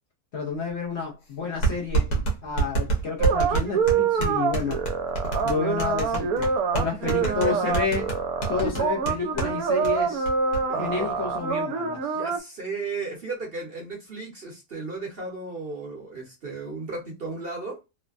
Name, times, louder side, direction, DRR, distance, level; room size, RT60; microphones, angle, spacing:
voice 1, 0.3-2.2 2.4-4.8 5.4-8.0 8.5-10.3 10.8-12.1, left 5 dB, 55° left, 0.8 m, -30 dB
sound 1, 0.7-0.8 1.6-9.5 9.8-9.9 10.3-10.6, right 4 dB, 80° left, 1.5 m, -27 dB
sound 2, 3.2-12.4, right 5 dB, 75° right, 1.0 m, -26 dB
voice 2, 7.0-8.0 10.7-11.1 12.1-17.8, right 3 dB, 45° right, 0.8 m, -35 dB
3.2 x 2.1 x 2.4 m
omnidirectional pair, 1.6 m